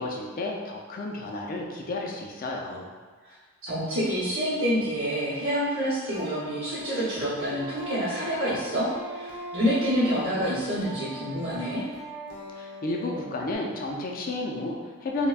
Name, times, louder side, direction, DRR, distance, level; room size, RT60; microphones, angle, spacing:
voice 1, 0.0-2.9 12.6-15.3, left 2 dB, 40° left, 0 dB, 0.4 m, -32 dB
voice 2, 3.6-11.8, equal, 75° right, -14 dB, 1.0 m, -27 dB
sound 1, 6.1-13.5, right 1 dB, 70° left, 0.7 m, -40 dB
3.3 x 2.1 x 2.4 m, 1.4 s
head